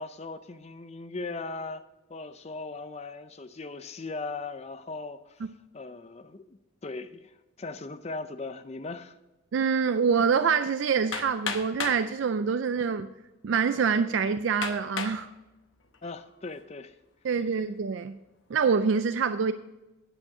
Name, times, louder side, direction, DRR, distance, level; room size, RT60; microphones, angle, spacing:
voice 1, 0.0-1.8 2.1-5.4 5.7-9.2 16.0-17.0, left 3 dB, 30° left, 0.5 m, -39 dB
voice 2, 9.5-13.1 13.4-15.3 17.2-18.2 18.5-19.5, right 6 dB, 60° right, 0.3 m, -25 dB
Hammer, 11.1-12.1 13.0-13.1 13.7-13.8 14.6-15.2 15.8-16.2, left 6 dB, 60° left, 0.9 m, -34 dB
8.9 x 8.6 x 4.9 m
head